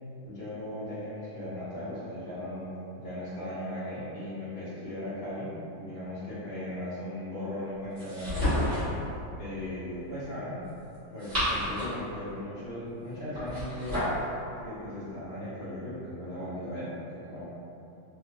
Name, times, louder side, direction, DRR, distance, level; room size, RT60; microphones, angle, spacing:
voice 1, 0.2-2.7 3.0-8.4 9.4-10.6 11.1-14.1 14.6-17.4, left 1 dB, 45° left, -13 dB, 1.0 m, -37 dB
sound 1, 8.0-9.0 10.9-12.1 13.3-14.2, left 1 dB, 35° right, 1.8 m, -30 dB
3.6 x 2.8 x 2.6 m, 2.7 s
omnidirectional pair, 1.8 m